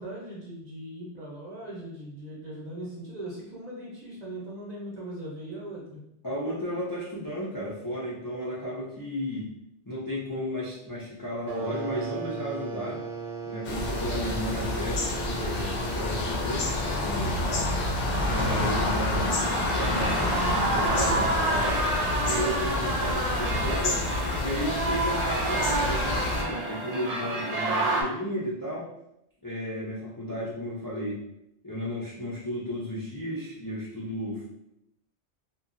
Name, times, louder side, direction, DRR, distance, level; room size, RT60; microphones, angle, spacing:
voice 1, 0.0-6.0, right 1 dB, 45° right, -6 dB, 0.7 m, -39 dB
voice 2, 6.2-9.5 9.9-13.0 13.4-15.1 15.4-17.7 18.2-21.9 22.2-24.0 24.4-28.9 29.4-31.2 31.6-34.5, equal, 30° left, -8 dB, 0.4 m, -33 dB
sound 1, 11.5-19.8, right 4 dB, 90° right, 0.9 m, -38 dB
sound 2, 13.6-26.4, left 2 dB, 60° left, 0.7 m, -28 dB
sound 3, 19.4-28.0, right 2 dB, 70° right, 0.3 m, -29 dB
2.7 x 2.2 x 2.5 m, 0.80 s
omnidirectional pair, 1.2 m